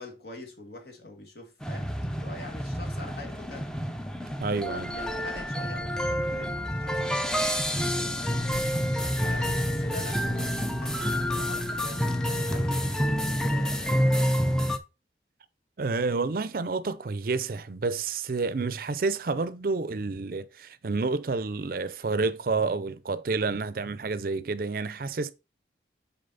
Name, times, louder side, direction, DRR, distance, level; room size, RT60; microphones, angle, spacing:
voice 1, 0.0-3.7 4.7-8.5 9.0-14.7, left 2 dB, 65° left, 1.8 m, -45 dB
sound 1, 1.6-14.8, equal, 5° left, 0.5 m, -28 dB
voice 2, 4.4-4.9 15.8-25.3, right 4 dB, 55° right, 0.5 m, -29 dB
6.7 x 4.2 x 4.0 m
head